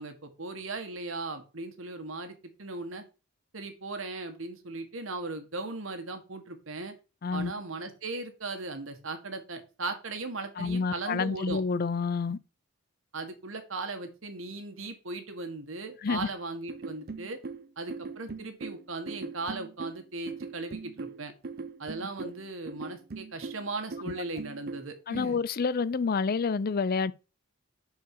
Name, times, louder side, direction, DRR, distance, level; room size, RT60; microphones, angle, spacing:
voice 1, 0.0-3.0 3.5-6.9 7.3-11.6 13.1-17.4 17.8-21.3 21.8-25.4, right 3 dB, 65° right, 1.6 m, -38 dB
voice 2, 7.2-7.5 10.6-12.4 16.0-16.3 22.2-22.3 25.1-27.1, left 5 dB, 45° left, 0.5 m, -28 dB
sound 1, 16.7-24.9, right 4 dB, 50° right, 0.6 m, -40 dB
11.0 x 4.8 x 4.6 m
head